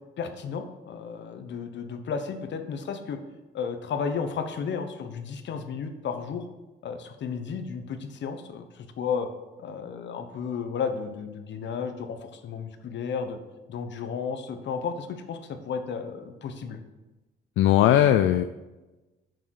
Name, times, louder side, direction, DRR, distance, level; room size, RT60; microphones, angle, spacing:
voice 1, 0.2-3.2 3.5-6.5 6.8-9.3 9.6-13.4 13.7-16.8, left 6 dB, 65° left, 8 dB, 1.1 m, -33 dB
voice 2, 17.6-18.4, left 12 dB, 85° left, 9 dB, 0.4 m, -19 dB
6.8 x 6.2 x 6.5 m, 1.1 s
cardioid pair, 90°, 20 cm